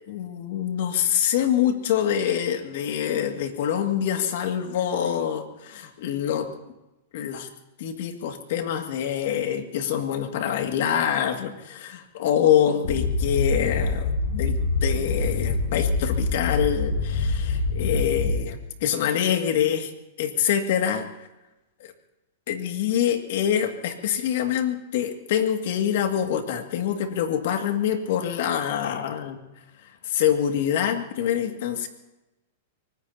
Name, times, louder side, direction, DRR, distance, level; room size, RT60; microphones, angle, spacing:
voice 1, 0.1-6.5 7.1-7.5 7.8-19.9 20.2-21.1 21.8-21.9 22.5-29.4 30.0-31.9, left 9 dB, 60° left, 5 dB, 2.0 m, -25 dB
sound 1, 12.8-18.7, left 3 dB, 80° left, 5.1 m, -25 dB
24.5 x 20.0 x 2.8 m, 0.98 s
hypercardioid pair, 145°, 0 cm